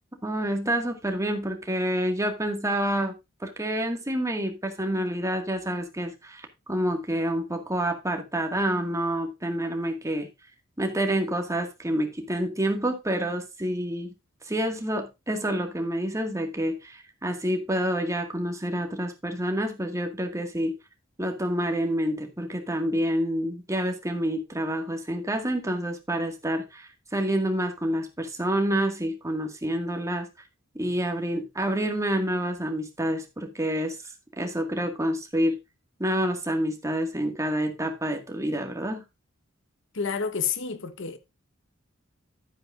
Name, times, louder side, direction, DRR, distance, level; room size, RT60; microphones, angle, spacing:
voice 1, 0.2-3.1 3.4-10.3 10.8-14.1 14.5-20.7 21.2-30.3 30.7-34.0 34.4-35.6 36.0-39.0, right 1 dB, 15° right, 2.0 m, -28 dB
voice 2, 39.9-41.2, left 6 dB, 65° left, 1.3 m, -29 dB
11.5 x 9.4 x 2.6 m
head